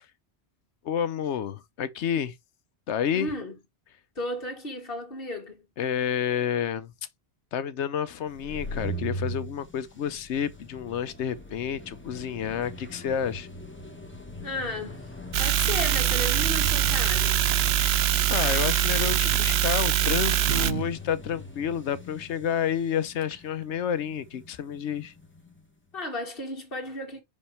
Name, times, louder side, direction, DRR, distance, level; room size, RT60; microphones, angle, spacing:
voice 1, 0.8-2.4 2.9-3.3 5.8-6.9 7.5-13.5 18.3-25.1, left 8 dB, 85° left, 1.0 m, -30 dB
voice 2, 3.1-3.6 4.2-5.7 14.4-15.1 15.4-17.4 25.9-27.2, left 1 dB, 55° left, 2.0 m, -34 dB
sound 1, 8.3-25.6, equal, 10° left, 1.2 m, -40 dB
sound 2, 15.3-20.7, right 12 dB, 70° right, 0.8 m, -23 dB
sound 3, 20.5-20.9 21.2-21.3 22.9-23.0 23.2-23.6, right 7 dB, 90° right, 1.2 m, -36 dB
5.7 x 5.2 x 3.2 m
omnidirectional pair, 1.1 m